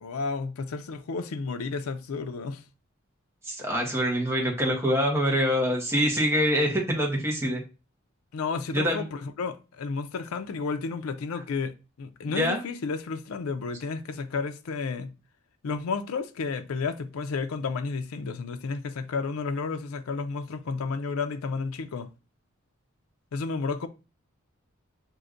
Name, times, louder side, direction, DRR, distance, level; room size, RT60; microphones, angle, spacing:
voice 1, 0.0-2.6 3.8-3.9 8.3-11.7 12.0-15.1 15.6-22.1 23.3-23.9, left 4 dB, 85° left, 0.4 m, -32 dB
voice 2, 3.5-7.6 8.7-9.0 12.2-12.6, equal, 15° right, 1.0 m, -25 dB
6.2 x 2.5 x 2.5 m
head